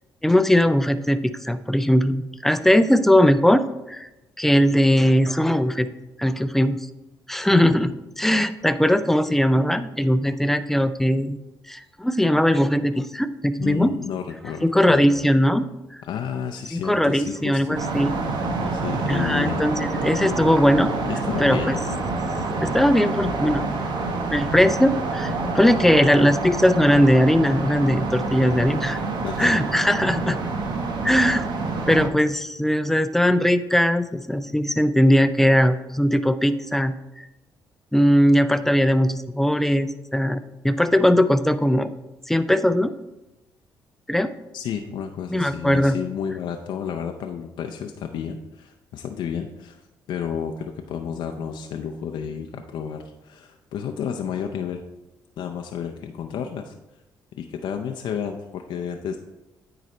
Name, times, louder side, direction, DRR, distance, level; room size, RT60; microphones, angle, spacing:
voice 1, 0.2-3.6 3.9-4.1 4.4-5.9 6.2-6.8 7.3-7.9 8.2-11.4 11.7-13.9 14.6-15.7 16.7-18.1 19.1-20.9 21.4-21.7 22.6-23.7 24.3-29.0 29.4-30.4 31.0-31.4 31.9-37.3 37.9-41.9 42.3-42.9 44.1-44.3 45.3-46.0, equal, 5° left, 11 dB, 0.4 m, -19 dB
voice 2, 7.5-7.8 13.6-15.2 16.0-17.8 18.7-19.6 20.2-20.5 21.0-22.0 29.2-29.6 44.5-49.8 50.1-54.8 55.4-56.7 57.4-59.2, left 8 dB, 75° left, 4 dB, 0.5 m, -31 dB
sound 1, 17.7-32.1, right 3 dB, 70° right, 1.0 m, -27 dB
9.3 x 4.0 x 4.3 m, 0.99 s
cardioid pair, 75°, 8 cm